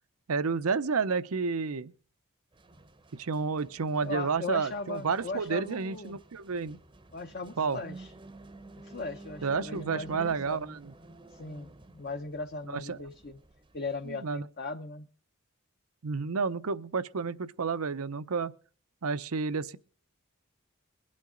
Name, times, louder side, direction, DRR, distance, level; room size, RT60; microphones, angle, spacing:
voice 1, 0.3-1.9 3.1-6.8 7.6-7.8 9.4-10.9 12.7-13.0 14.1-14.4 16.0-18.5 19.0-19.8, right 5 dB, 90° right, 0.7 m, -30 dB
sound 1, 2.5-14.1, right 2 dB, 20° right, 0.7 m, -52 dB
voice 2, 4.0-6.2 7.1-8.1 8.8-10.6 11.3-13.4 13.7-15.1, left 3 dB, 45° left, 0.7 m, -38 dB
22.5 x 8.6 x 3.8 m
head